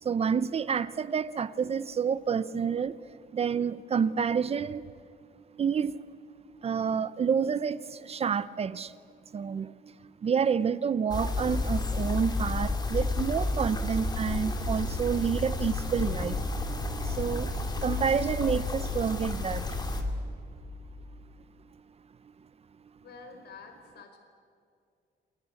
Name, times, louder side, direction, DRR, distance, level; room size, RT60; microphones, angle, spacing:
voice 1, 0.0-4.9 5.5-6.0 6.6-9.0 9.3-16.4 17.0-17.5 17.8-19.7, right 6 dB, 35° right, 16 dB, 0.6 m, -29 dB
sound 1, 11.1-20.0, left 2 dB, 20° left, 2.5 m, -31 dB
voice 2, 23.0-24.2, left 4 dB, 65° left, 5 dB, 4.8 m, -48 dB
28.5 x 22.5 x 8.4 m, 2.3 s
cardioid pair, 165°, 18 cm